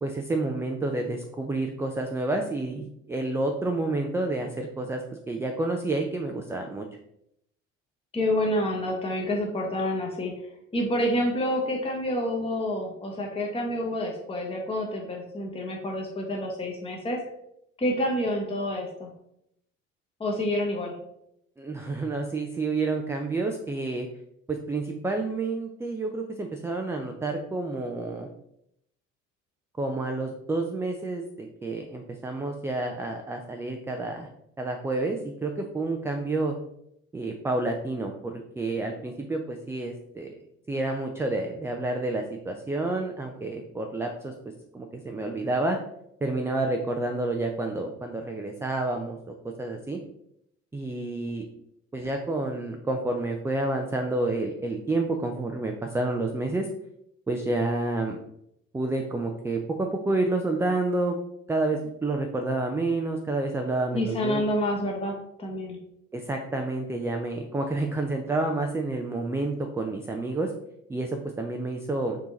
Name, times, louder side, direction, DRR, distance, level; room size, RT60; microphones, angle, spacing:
voice 1, 0.0-6.9 21.6-24.1 24.5-28.3 29.8-34.3 34.6-36.6 37.1-40.3 40.7-44.3 44.7-45.8 46.2-50.0 50.7-51.5 51.9-56.7 57.3-58.2 58.7-61.2 61.5-64.4 66.1-70.5 70.9-72.2, right 2 dB, 5° right, 3 dB, 0.3 m, -29 dB
voice 2, 8.1-10.3 10.7-17.2 17.8-19.1 20.2-20.9 63.9-65.8, left 1 dB, 15° left, 0 dB, 0.9 m, -28 dB
4.9 x 2.8 x 3.8 m, 0.77 s
figure-of-eight pair, 55°, 38 cm